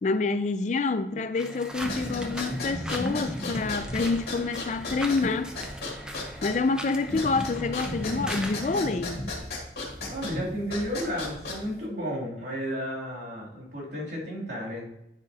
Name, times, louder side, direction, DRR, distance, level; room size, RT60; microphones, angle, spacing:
voice 1, 0.0-5.6 6.4-9.2, left 3 dB, 40° left, 0.4 m, -27 dB
sound 1, 1.3-8.8, equal, 5° right, 0.6 m, -40 dB
sound 2, 1.8-11.8, left 1 dB, 65° left, 2.2 m, -34 dB
voice 2, 10.1-14.9, equal, 80° right, 2.8 m, -33 dB
9.9 x 5.1 x 2.8 m
head